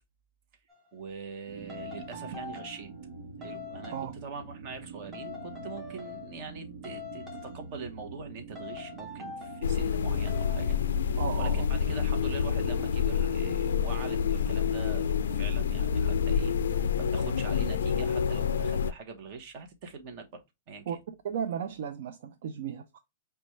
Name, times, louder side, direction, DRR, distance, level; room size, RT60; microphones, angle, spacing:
sound 1, 0.7-0.9 1.7-3.0 3.4-4.1 5.1-6.6 6.8-7.7 8.6-9.7 10.3-10.9, left 6 dB, 10° right, 0.8 m, -43 dB
voice 1, 0.9-2.9 3.4-3.9 4.2-20.8, right 5 dB, 40° right, 0.9 m, -43 dB
sound 2, 1.5-18.3, right 4 dB, 85° right, 0.9 m, -45 dB
sound 3, 9.6-18.9, left 7 dB, 90° left, 0.3 m, -28 dB
voice 2, 11.2-11.7 20.9-21.0 21.2-23.0, right 8 dB, 60° right, 0.4 m, -35 dB
5.0 x 2.2 x 3.0 m
hypercardioid pair, 160°, 0 cm